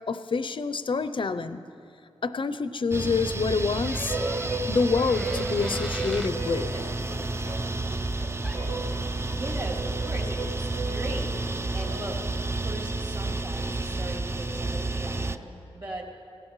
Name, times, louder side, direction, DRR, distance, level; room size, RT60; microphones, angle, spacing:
voice 1, 0.1-1.6 2.2-4.2 4.7-6.7, left 4 dB, 55° left, 12 dB, 0.5 m, -27 dB
sound 1, 2.9-15.4, right 2 dB, 25° right, 0.4 m, -31 dB
sound 2, 3.8-6.4 8.4-8.6, right 1 dB, 5° right, 0.9 m, -40 dB
sound 3, 4.1-12.3, right 2 dB, 65° right, 1.6 m, -36 dB
voice 2, 9.3-11.3 11.7-12.2 12.5-15.4 15.7-16.0, right 1 dB, 45° right, -1 dB, 2.6 m, -38 dB
19.5 x 16.5 x 3.1 m, 2.5 s
wide cardioid pair, 80°, 10 cm